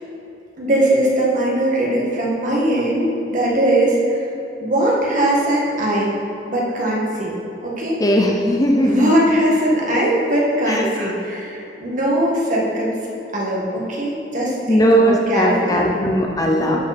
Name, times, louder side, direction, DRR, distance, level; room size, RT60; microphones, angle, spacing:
voice 1, 0.6-4.2 4.6-6.2 6.5-7.3 7.6-8.0 8.8-13.0 13.3-15.9 16.6-16.8, right 1 dB, 50° right, -3 dB, 1.8 m, -20 dB
voice 2, 8.0-9.1 10.7-11.1 14.7-16.8, equal, 20° left, 1 dB, 0.6 m, -18 dB
12.0 x 5.5 x 4.3 m, 2.9 s
head